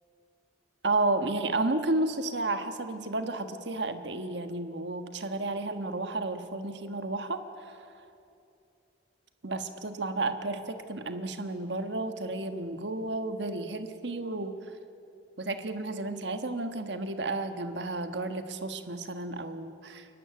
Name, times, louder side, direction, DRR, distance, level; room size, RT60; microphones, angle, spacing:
voice 1, 0.8-7.8 9.4-14.6 15.4-20.1, right 2 dB, 70° right, 8 dB, 1.4 m, -32 dB
29.0 x 12.0 x 9.2 m, 2.6 s
head